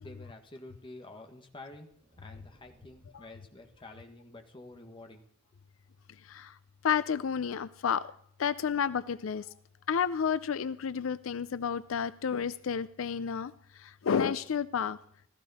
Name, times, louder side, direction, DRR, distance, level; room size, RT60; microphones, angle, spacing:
voice 1, 0.0-1.9 2.2-5.2, left 2 dB, 25° left, 4 dB, 1.6 m, -49 dB
sound 1, 1.9-6.0, right 1 dB, 30° right, 2.3 m, -65 dB
voice 2, 6.2-6.6 6.8-8.1 8.4-9.5 9.9-15.0, left 7 dB, 85° left, 16 dB, 0.5 m, -31 dB
15.5 x 15.0 x 4.2 m, 0.65 s
head